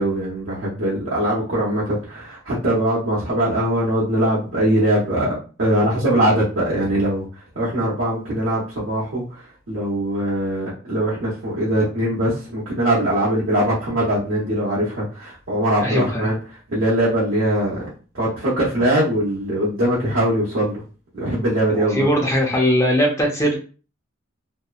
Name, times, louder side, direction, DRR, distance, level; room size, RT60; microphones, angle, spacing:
voice 1, 0.0-5.3 5.6-7.2 7.5-16.4 16.7-17.8 18.1-20.8 21.1-22.0, right 1 dB, 75° right, -8 dB, 0.9 m, -21 dB
voice 2, 15.8-16.3 21.7-23.5, equal, 15° left, -1 dB, 0.6 m, -20 dB
2.8 x 2.1 x 2.4 m, 0.37 s
head